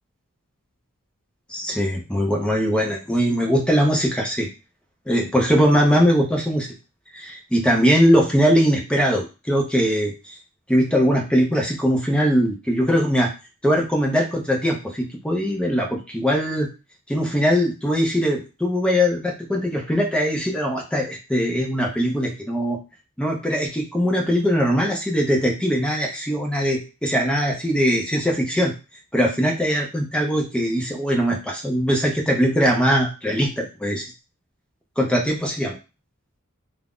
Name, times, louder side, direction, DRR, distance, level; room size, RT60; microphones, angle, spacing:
voice 1, 1.5-4.5 5.1-6.7 7.1-10.3 10.7-13.3 13.6-16.7 17.1-22.8 23.2-28.7 29.1-34.0 35.0-35.8, equal, 5° left, 0 dB, 0.5 m, -21 dB
2.4 x 2.1 x 3.5 m, 0.29 s
head